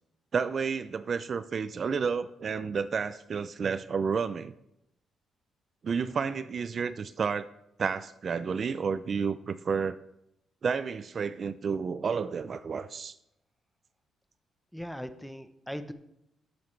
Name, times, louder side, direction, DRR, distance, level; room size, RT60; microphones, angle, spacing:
voice 1, 0.3-4.5 5.8-7.5 7.8-10.0 10.6-13.2, right 6 dB, 45° right, 14 dB, 0.4 m, -31 dB
voice 2, 14.7-15.9, equal, ahead, 9 dB, 0.8 m, -39 dB
16.0 x 7.0 x 3.2 m, 0.82 s
cardioid pair, 90°, 0 cm